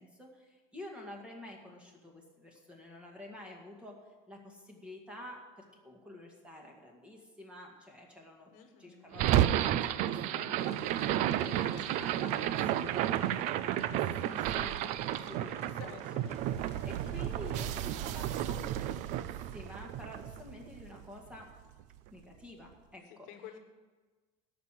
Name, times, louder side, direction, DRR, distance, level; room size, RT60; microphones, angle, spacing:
voice 1, 0.0-8.5 8.8-11.1 11.4-15.9 16.8-21.5 22.1-23.3, left 1 dB, 5° right, 0 dB, 2.1 m, -49 dB
voice 2, 8.5-9.1 15.8-16.3 23.1-23.6, left 8 dB, 60° left, 6 dB, 1.3 m, -51 dB
sound 1, 9.1-21.4, right 12 dB, 55° right, 0.5 m, -32 dB
sound 2, 10.6-18.4, left 6 dB, 45° left, 1.0 m, -57 dB
13.0 x 6.1 x 9.1 m, 1.3 s
cardioid pair, 155°, 15 cm